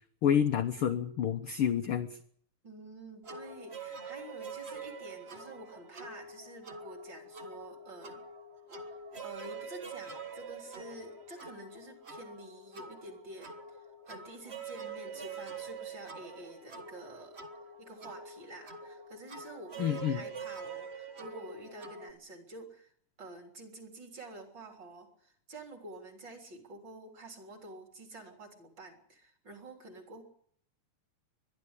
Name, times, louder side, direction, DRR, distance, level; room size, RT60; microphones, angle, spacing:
voice 1, 0.2-2.2 19.8-20.2, left 9 dB, 65° left, 7 dB, 1.4 m, -28 dB
voice 2, 2.6-8.2 8.7-13.8 14.1-17.4 17.8-22.9 23.2-30.2, right 2 dB, 35° right, 3 dB, 4.1 m, -49 dB
sound 1, 3.2-22.1, right 4 dB, 50° right, 0.7 m, -45 dB
22.0 x 12.0 x 9.8 m, 0.63 s
omnidirectional pair, 3.4 m